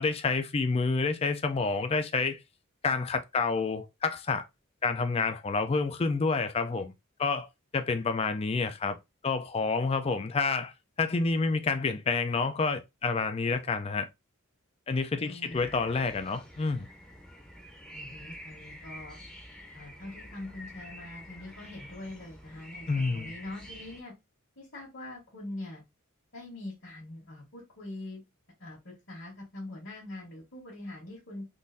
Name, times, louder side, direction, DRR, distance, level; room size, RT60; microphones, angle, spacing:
voice 1, 0.0-2.4 2.8-4.4 4.8-6.9 7.2-7.5 7.7-9.0 9.2-10.7 11.0-14.1 14.9-16.9 22.9-23.3, left 4 dB, 30° left, 0.4 m, -28 dB
voice 2, 15.2-15.8 17.9-19.2 19.7-24.1 24.6-25.8 26.3-28.2 28.6-31.5, left 2 dB, 60° left, 1.5 m, -43 dB
sound 1, 15.5-24.0, equal, 5° left, 0.7 m, -47 dB
3.7 x 2.6 x 2.6 m
head